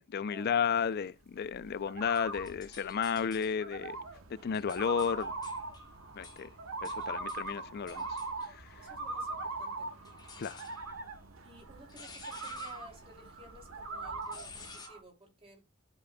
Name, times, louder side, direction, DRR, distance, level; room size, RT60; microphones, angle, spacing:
voice 1, 0.0-4.0 4.3-5.3 6.2-6.5 6.8-8.2 8.5-8.7 10.4-10.7, left 7 dB, 50° left, 0.4 m, -33 dB
sound 1, 0.8-15.0, right 2 dB, 90° right, 1.6 m, -41 dB
sound 2, 2.1-3.6 4.2-9.3 10.0-14.9, left 4 dB, 20° left, 1.2 m, -53 dB
sound 3, 3.7-14.8, right 2 dB, 70° right, 1.0 m, -57 dB
voice 2, 8.8-9.9 11.4-15.6, right 1 dB, 25° right, 2.6 m, -55 dB
12.5 x 5.1 x 2.2 m
head